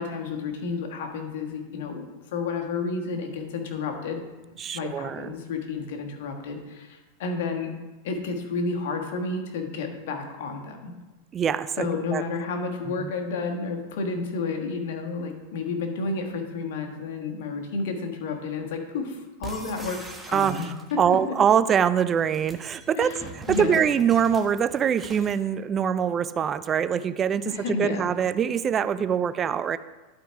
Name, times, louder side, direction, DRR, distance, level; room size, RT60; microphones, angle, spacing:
voice 1, 0.0-4.2 4.7-7.7 8.0-10.9 11.8-20.0 20.3-21.3 23.0-23.8 27.4-28.1, left 4 dB, 70° left, 3 dB, 1.5 m, -31 dB
voice 2, 4.6-5.3 11.3-11.9 12.1-12.2 13.0-13.1 20.3-20.6 21.0-29.8, right 8 dB, 30° right, 15 dB, 0.3 m, -24 dB
sound 1, 19.4-21.1 22.1-25.4, right 2 dB, 10° right, 1.2 m, -42 dB
11.5 x 4.7 x 4.7 m, 1.1 s
hypercardioid pair, 110°, 0 cm